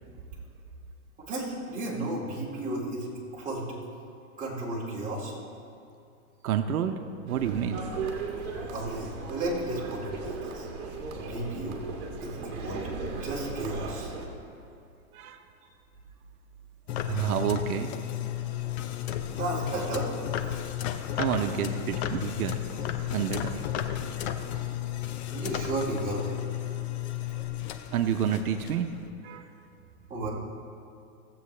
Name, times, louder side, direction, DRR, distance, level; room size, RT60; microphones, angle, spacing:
voice 1, 1.3-3.1 3.3-3.7 4.4-5.3 8.7-10.7 11.3-11.8 12.2-14.1 17.0-17.1 19.3-20.1 23.1-23.2 25.0-26.3 30.1-30.3, right 2 dB, 20° right, -6 dB, 2.4 m, -33 dB
voice 2, 6.4-7.0 7.2-7.8 15.1-15.4 17.1-18.0 21.2-22.6 23.1-23.6 27.9-28.9 29.2-29.5, right 8 dB, 90° right, 7 dB, 0.8 m, -29 dB
sound 1, 7.3-14.3, right 4 dB, 45° right, 1.7 m, -37 dB
sound 2, 16.9-29.1, left 11 dB, 50° left, 0.7 m, -33 dB
17.0 x 7.8 x 3.2 m, 2.6 s
supercardioid pair, 145°, 43 cm